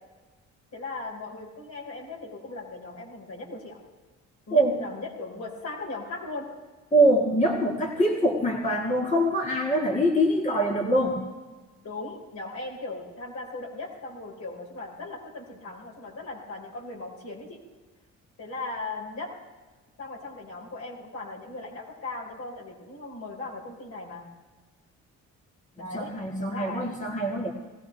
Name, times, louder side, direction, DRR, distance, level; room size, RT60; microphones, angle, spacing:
voice 1, 0.7-3.8 4.5-6.5 11.8-17.6 18.4-19.3 20.0-24.3 25.8-26.1 26.4-26.9, left 3 dB, 65° left, -2 dB, 5.0 m, -38 dB
voice 2, 6.9-11.3 25.9-27.5, right 1 dB, 25° left, -1 dB, 2.1 m, -24 dB
19.5 x 16.5 x 3.5 m, 1.3 s
cardioid pair, 90°, 30 cm